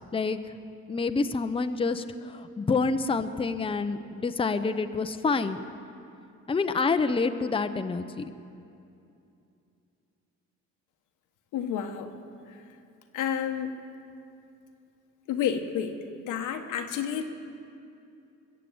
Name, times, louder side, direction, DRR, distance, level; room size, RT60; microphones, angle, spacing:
voice 1, 0.9-5.6 6.5-8.3, left 4 dB, 20° left, 9 dB, 0.6 m, -27 dB
voice 2, 11.5-12.1 13.1-13.7 15.3-16.0 16.3-17.2, left 8 dB, 85° left, 6 dB, 1.2 m, -30 dB
21.5 x 7.6 x 7.9 m, 2.7 s
cardioid pair, 90°, 30 cm